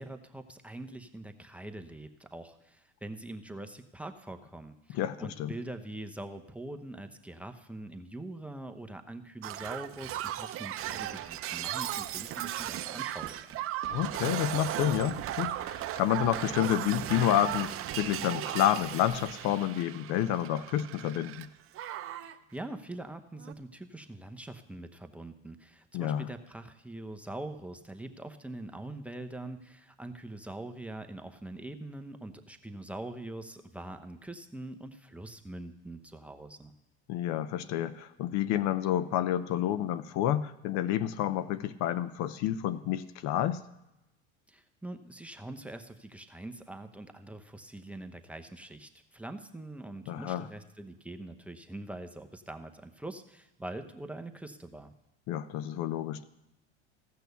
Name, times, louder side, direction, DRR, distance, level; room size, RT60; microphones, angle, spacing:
voice 1, 0.0-13.6 22.2-36.7 44.5-54.9, right 1 dB, 5° right, 6 dB, 0.8 m, -43 dB
voice 2, 4.9-5.5 13.9-21.5 25.9-26.3 37.1-43.6 50.1-50.5 55.3-56.2, left 11 dB, 60° left, 14 dB, 0.7 m, -29 dB
Shatter, 9.4-21.5 21.7-22.3 23.4-23.5, right 13 dB, 40° right, 0.7 m, -36 dB
15.5 x 6.2 x 6.8 m, 0.92 s
supercardioid pair, 100°, 33 cm